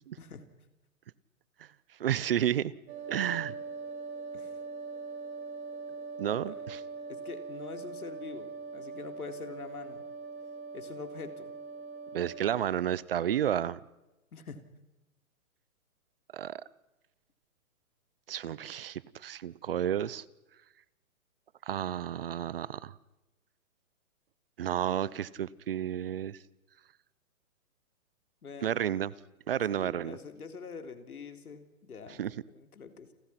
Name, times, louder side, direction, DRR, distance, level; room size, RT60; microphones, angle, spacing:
voice 1, 2.0-2.7 3.1-3.5 6.2-6.8 12.1-13.8 16.3-16.6 18.3-20.2 21.7-22.9 24.6-26.4 28.6-29.1 29.5-30.2 32.2-32.3, right 10 dB, 40° right, 22 dB, 0.8 m, -31 dB
sound 1, 2.9-12.6, right 4 dB, 15° right, 4.0 m, -42 dB
voice 2, 7.1-10.0 10.7-11.6 14.3-14.6 28.4-28.8 29.7-33.1, left 5 dB, 90° left, 8 dB, 3.7 m, -45 dB
29.5 x 24.0 x 6.0 m, 1.0 s
hypercardioid pair, 160°, 43 cm